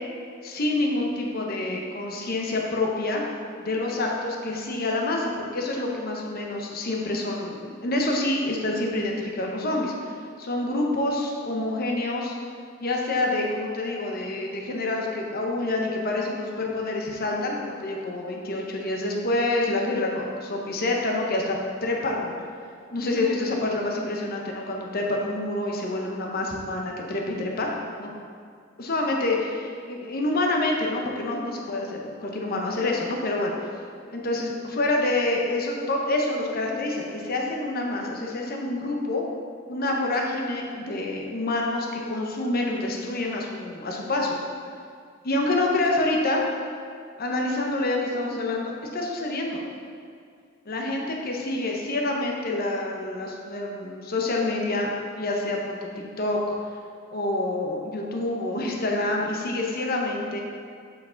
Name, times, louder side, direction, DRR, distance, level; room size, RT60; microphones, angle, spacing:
voice 1, 0.4-3.2 3.6-10.1 10.4-12.4 12.8-21.6 21.8-22.4 22.9-27.7 28.0-28.2 28.8-33.5 34.1-39.2 39.7-44.4 45.2-46.4 47.2-49.6 50.6-54.9 55.2-55.8 56.2-56.4 57.1-60.4, left 2 dB, 45° left, 0 dB, 0.9 m, -27 dB
7.3 x 4.8 x 3.9 m, 2.2 s
head